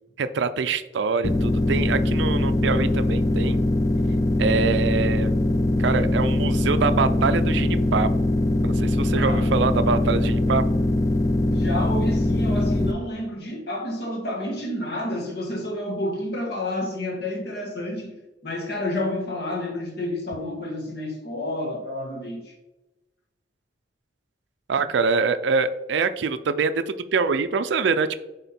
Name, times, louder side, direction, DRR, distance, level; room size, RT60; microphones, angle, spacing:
voice 1, 0.2-3.6 4.4-5.3 5.8-8.1 8.6-10.6 24.7-28.1, right 5 dB, 70° right, 0.4 m, -24 dB
sound 1, 1.2-12.9, left 1 dB, 15° left, 0.3 m, -22 dB
voice 2, 9.1-9.5 11.4-18.2 18.4-22.5 24.8-24.9, left 1 dB, 55° left, 1.5 m, -30 dB
8.0 x 3.7 x 4.3 m
head